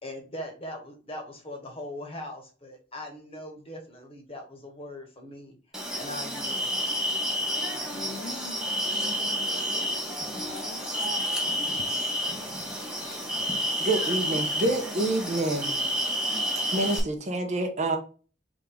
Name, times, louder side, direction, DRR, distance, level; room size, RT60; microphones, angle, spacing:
voice 1, 0.0-5.6 6.0-6.7, left 1 dB, 30° left, 1.2 m, -40 dB
sound 1, 5.7-17.0, equal, 5° right, 1.1 m, -30 dB
voice 2, 7.9-10.8, left 2 dB, 60° left, 0.8 m, -44 dB
voice 3, 13.8-15.7 16.7-18.0, right 2 dB, 40° right, 0.9 m, -27 dB
3.6 x 3.5 x 3.7 m
head